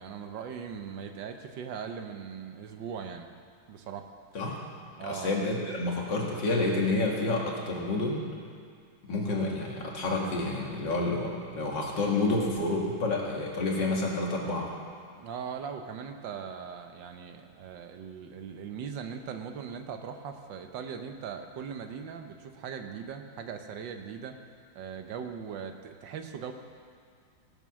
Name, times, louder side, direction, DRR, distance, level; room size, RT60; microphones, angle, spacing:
voice 1, 0.0-3.3 3.7-4.1 5.0-5.4 15.2-24.4 24.7-26.5, right 7 dB, 75° right, 6 dB, 1.5 m, -39 dB
voice 2, 5.0-8.3 9.1-14.7, left 2 dB, 70° left, -2 dB, 2.6 m, -29 dB
18.0 x 7.4 x 6.3 m, 2.2 s
omnidirectional pair, 2.1 m